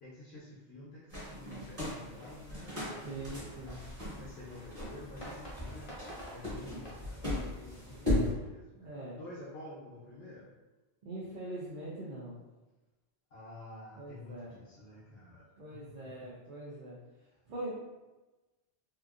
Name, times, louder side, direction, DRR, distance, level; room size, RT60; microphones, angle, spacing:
voice 1, 0.0-3.5 4.1-10.5 13.3-15.4 15.8-16.3, left 2 dB, 70° left, -9 dB, 1.0 m, -50 dB
sound 1, 1.1-8.3, left 1 dB, 30° right, 1.2 m, -37 dB
voice 2, 3.0-3.8 8.8-9.2 11.0-12.4 13.9-14.6 15.6-17.7, right 1 dB, 55° right, -5 dB, 0.7 m, -43 dB
sound 2, 3.1-8.5, equal, 35° left, 0.8 m, -51 dB
2.8 x 2.5 x 2.3 m, 1.1 s
omnidirectional pair, 1.1 m